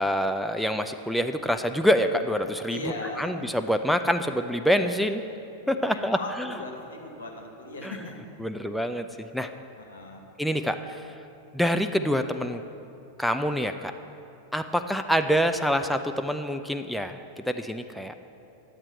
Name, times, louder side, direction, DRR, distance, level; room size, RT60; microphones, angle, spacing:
voice 1, 0.0-2.8 3.2-5.2 5.7-6.5 7.8-8.0 8.4-9.1 9.3-9.5 10.4-11.1 11.5-12.6 13.2-13.9 14.5-18.1, equal, ahead, 7 dB, 0.3 m, -26 dB
voice 2, 2.7-3.3 5.6-8.2 9.8-10.3, left 2 dB, 70° left, 1 dB, 1.0 m, -38 dB
10.0 x 7.4 x 4.5 m, 2.7 s
figure-of-eight pair, 90°, 0 cm